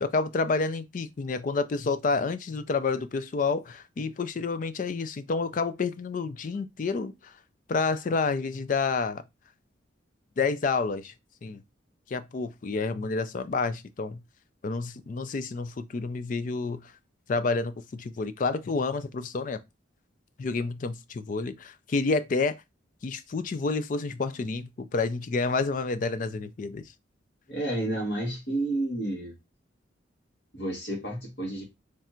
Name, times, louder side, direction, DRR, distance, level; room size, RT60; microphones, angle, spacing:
voice 1, 0.0-7.4 7.7-9.2 10.4-11.1 11.4-11.6 12.1-14.2 14.6-16.9 17.3-19.6 20.4-22.6 23.0-26.9, left 4 dB, 40° left, 0.3 m, -29 dB
voice 2, 27.5-29.3 30.5-31.6, right 1 dB, 65° left, 1.8 m, -30 dB
3.4 x 2.4 x 4.2 m
head